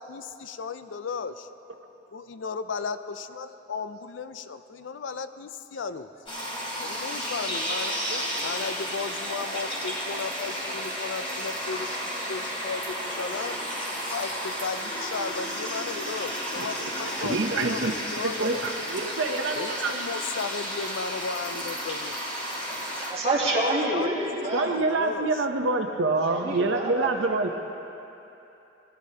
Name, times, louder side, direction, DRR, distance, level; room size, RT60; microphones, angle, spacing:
voice 1, 0.0-1.5 2.1-6.1 6.8-8.0 8.4-13.6 14.1-18.6 19.6-22.1 23.6-25.3, left 5 dB, 80° left, 11 dB, 0.5 m, -35 dB
sound 1, 6.3-23.1, equal, 30° left, 3.0 m, -32 dB
voice 2, 17.2-20.0 24.5-27.6, right 3 dB, 80° right, 4 dB, 0.7 m, -27 dB
voice 3, 23.0-24.7 26.3-27.6, right 1 dB, 35° right, -6 dB, 2.2 m, -28 dB
19.0 x 12.0 x 2.8 m, 2.9 s
head